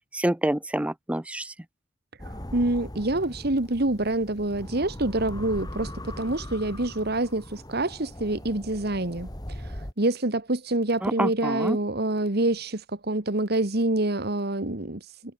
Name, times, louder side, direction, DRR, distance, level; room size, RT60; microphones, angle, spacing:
voice 1, 0.1-1.5 11.0-11.8, right 1 dB, 5° right, 0.5 m, -27 dB
sound 1, 2.2-9.9, left 1 dB, 20° left, 3.6 m, -39 dB
voice 2, 2.2-15.2, right 2 dB, 60° right, 2.1 m, -27 dB
head